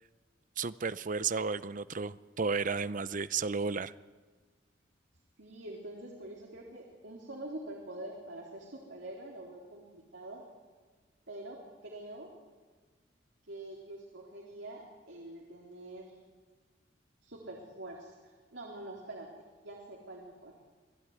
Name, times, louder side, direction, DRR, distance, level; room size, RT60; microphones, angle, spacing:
voice 1, 0.6-3.9, right 5 dB, 45° right, 15 dB, 0.7 m, -33 dB
voice 2, 5.4-10.4 11.3-12.3 13.4-16.2 17.2-19.3 19.6-20.6, right 1 dB, 80° right, -1 dB, 3.9 m, -45 dB
27.5 x 18.5 x 9.7 m, 1.4 s
head